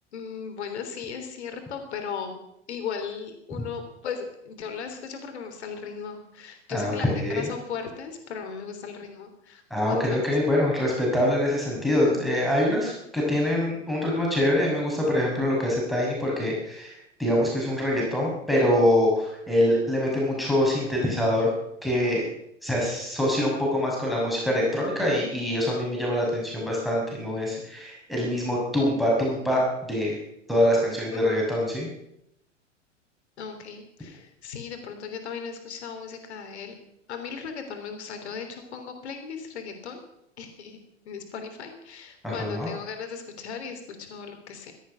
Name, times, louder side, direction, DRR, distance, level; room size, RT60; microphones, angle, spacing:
voice 1, 0.1-2.3 2.7-10.2 31.1-31.2 33.4-36.7 37.1-40.0 40.4-40.8 41.1-44.7, left 6 dB, 60° left, 6 dB, 3.4 m, -37 dB
voice 2, 6.7-7.5 9.7-21.5 21.8-22.2 22.6-30.2 30.5-31.9 42.2-42.7, left 1 dB, ahead, -3 dB, 6.1 m, -24 dB
16.5 x 12.5 x 5.8 m, 0.80 s
figure-of-eight pair, 95°, 37 cm